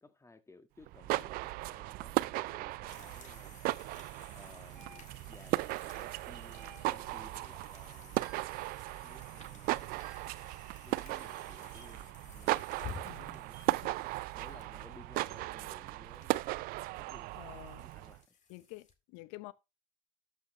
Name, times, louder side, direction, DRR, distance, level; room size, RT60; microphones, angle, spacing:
voice 1, 0.0-3.6 4.3-5.5 5.9-8.2 9.0-10.4 10.8-12.5 12.9-13.6 14.0-16.7 17.0-18.2, left 2 dB, 15° left, 1.6 m, -58 dB
sound 1, 0.8-18.2, right 20 dB, 55° right, 0.4 m, -37 dB
sound 2, 2.9-18.9, left 6 dB, 40° left, 2.1 m, -54 dB
sound 3, 4.8-5.4 6.5-7.2 8.2-8.6 10.0-10.4 11.7-12.0 13.5-13.8 15.3-15.5 17.1-17.3, right 3 dB, 85° right, 1.6 m, -58 dB
voice 2, 13.0-13.4 13.7-13.9 17.4-17.8 18.5-19.5, left 20 dB, 65° left, 0.7 m, -49 dB
13.0 x 6.0 x 3.1 m
hypercardioid pair, 65°, 19 cm